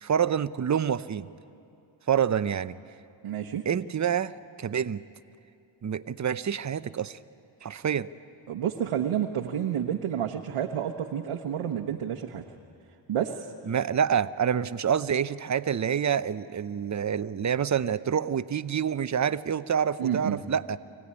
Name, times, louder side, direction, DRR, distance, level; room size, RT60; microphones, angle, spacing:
voice 1, 0.0-1.3 2.1-2.8 3.7-5.0 5.8-7.2 7.6-8.1 13.7-20.8, right 8 dB, 35° right, 14 dB, 0.7 m, -27 dB
voice 2, 3.2-3.6 8.5-12.4 13.1-13.5 20.0-20.4, right 9 dB, 85° right, 1 dB, 1.1 m, -30 dB
24.5 x 17.0 x 9.7 m, 2.6 s
cardioid pair, 65°, 50 cm